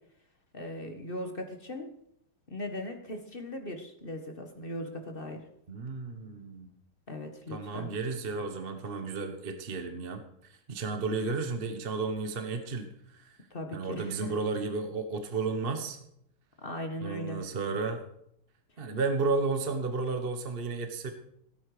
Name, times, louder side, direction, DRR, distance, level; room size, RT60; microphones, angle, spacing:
voice 1, 0.5-1.9 2.5-5.4 7.1-7.9 13.5-14.3 16.6-17.4, left 1 dB, 30° left, 5 dB, 1.3 m, -38 dB
voice 2, 5.7-6.7 7.5-13.4 13.7-16.0 17.0-18.0 18.8-21.1, right 4 dB, 35° right, 6 dB, 1.1 m, -33 dB
17.5 x 8.8 x 5.0 m, 0.75 s
omnidirectional pair, 2.3 m